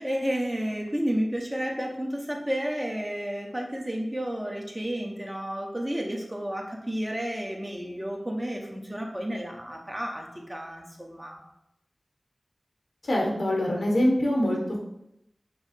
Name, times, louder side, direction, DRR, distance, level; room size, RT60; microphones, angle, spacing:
voice 1, 0.0-11.4, equal, 15° right, 0 dB, 0.8 m, -31 dB
voice 2, 13.0-14.8, left 1 dB, 85° left, -2 dB, 1.1 m, -24 dB
5.4 x 2.0 x 4.1 m, 0.81 s
wide cardioid pair, 55°, 0 cm